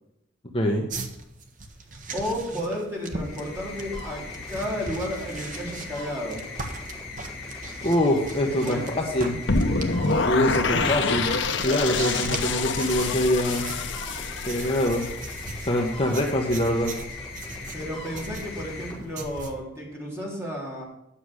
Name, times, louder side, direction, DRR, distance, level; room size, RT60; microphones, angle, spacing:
voice 1, 0.5-0.9 7.8-9.4 10.2-13.7 14.5-15.1 15.6-16.9, equal, 30° left, 0 dB, 1.2 m, -24 dB
sound 1, 0.9-8.9 9.2-19.5, right 3 dB, 40° right, 1.2 m, -39 dB
voice 2, 2.1-6.4 8.6-9.4 17.7-20.8, equal, 15° right, -4 dB, 3.7 m, -32 dB
sound 2, 3.1-19.6, left 3 dB, 5° left, 5.2 m, -39 dB
sound 3, 9.5-15.5, left 4 dB, 65° left, 0.9 m, -26 dB
10.0 x 7.0 x 6.3 m, 0.85 s
head